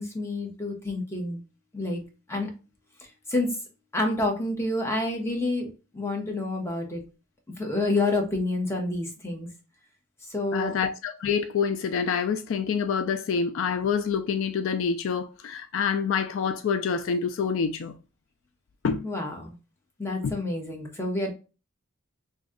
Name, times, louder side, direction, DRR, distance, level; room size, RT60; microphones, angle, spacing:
voice 1, 0.0-1.4 1.7-2.0 2.3-2.5 3.3-3.5 3.9-5.7 5.9-7.0 7.6-9.5 10.3-10.8 19.0-19.5 20.0-21.3, left 2 dB, 15° left, 0.9 m, -28 dB
voice 2, 10.5-17.9 18.8-19.1 20.2-20.4, left 6 dB, 65° left, 0.4 m, -27 dB
3.0 x 2.6 x 3.6 m
head